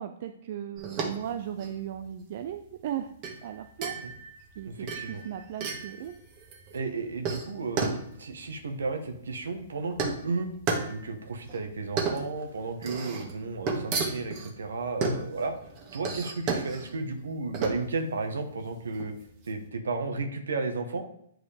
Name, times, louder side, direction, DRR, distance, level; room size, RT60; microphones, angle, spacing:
voice 1, 0.0-3.1 3.4-4.0 4.6-6.1, right 10 dB, 55° right, 8 dB, 0.5 m, -37 dB
sound 1, 0.8-19.6, right 4 dB, 35° right, 1.8 m, -34 dB
voice 2, 4.6-5.2 6.7-7.9 8.2-10.5 10.9-15.5 15.9-19.1 19.5-21.0, right 3 dB, 75° right, 6 dB, 1.2 m, -33 dB
8.9 x 4.8 x 3.5 m, 0.71 s
hypercardioid pair, 120°, 0 cm